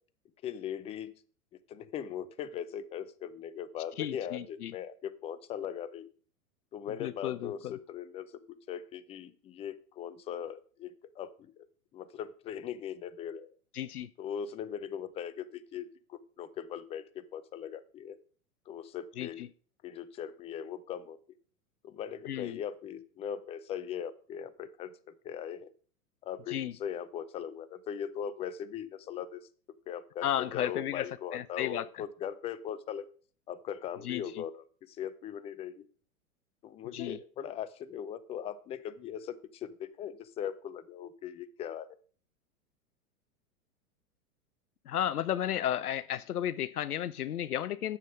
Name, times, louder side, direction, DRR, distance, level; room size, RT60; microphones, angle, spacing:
voice 1, 0.4-1.1 1.7-6.1 6.7-11.7 11.9-13.5 14.2-18.2 18.7-19.4 19.8-21.2 21.8-25.7 26.2-29.5 29.9-33.1 33.5-35.8 36.6-42.0, left 9 dB, 15° left, 14 dB, 0.4 m, -40 dB
voice 2, 4.0-4.8 7.0-7.7 13.7-14.1 19.2-19.5 22.3-22.6 26.5-26.7 30.2-32.0 34.0-34.4 36.8-37.2 44.8-48.0, left 11 dB, 80° left, 15 dB, 0.6 m, -34 dB
9.2 x 7.2 x 5.1 m, 0.43 s
figure-of-eight pair, 100°, 44 cm